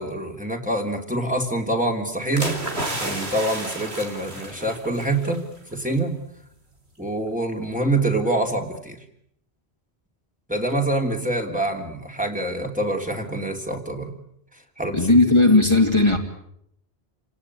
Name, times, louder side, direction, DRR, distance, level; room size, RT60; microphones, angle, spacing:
voice 1, 0.0-2.6 3.0-5.4 5.7-6.2 7.0-9.0 10.5-14.2 14.8-15.1, right 2 dB, 5° right, 2 dB, 3.2 m, -25 dB
sound 1, 2.4-5.4 5.7-5.9, right 1 dB, 75° right, 4.5 m, -31 dB
voice 2, 14.9-16.2, left 2 dB, 25° left, 2 dB, 2.6 m, -16 dB
29.5 x 18.0 x 9.8 m, 0.73 s
omnidirectional pair, 1.1 m